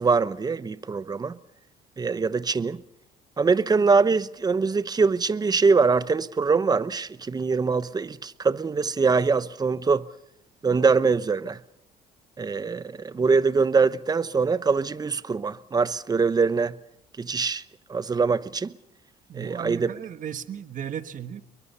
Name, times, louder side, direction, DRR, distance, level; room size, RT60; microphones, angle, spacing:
voice 1, 0.0-1.3 2.0-2.8 3.4-10.0 10.6-11.6 12.4-16.8 17.2-17.6 17.9-18.7 19.3-19.9, right 4 dB, 25° right, 0.9 m, -23 dB
voice 2, 19.3-21.4, right 9 dB, 50° right, 1.5 m, -35 dB
28.5 x 23.0 x 5.6 m
cardioid pair, 110°, 17 cm